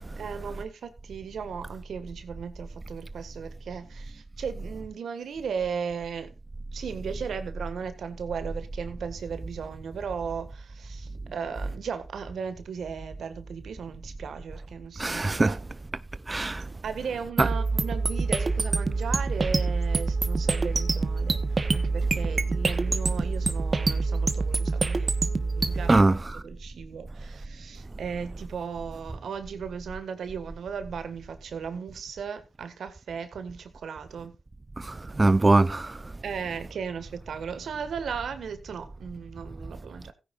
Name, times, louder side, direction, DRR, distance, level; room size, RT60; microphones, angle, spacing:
voice 1, 0.2-6.3 6.7-15.6 16.8-21.4 21.7-26.1 26.4-34.3 36.2-40.1, right 6 dB, 80° right, 1.6 m, -36 dB
voice 2, 15.0-15.5 16.3-16.6 17.4-17.5 25.9-26.2 34.8-36.0, right 2 dB, 30° right, 0.5 m, -22 dB
sound 1, 17.4-26.0, right 3 dB, 50° right, 1.1 m, -26 dB
16.0 x 9.7 x 2.4 m
cardioid pair, 45°, 0 cm